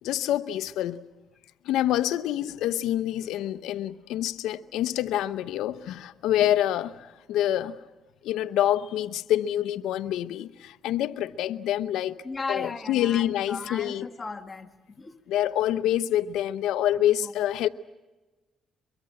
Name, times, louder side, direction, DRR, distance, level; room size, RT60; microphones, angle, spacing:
voice 1, 0.0-1.0 1.6-7.8 8.2-12.2 12.5-14.1 15.3-17.7, left 12 dB, 90° left, 0.8 m, -26 dB
voice 2, 12.2-15.2 17.0-17.5, left 4 dB, 30° left, 1.7 m, -37 dB
23.5 x 23.0 x 7.8 m
cardioid pair, 90°, 0 cm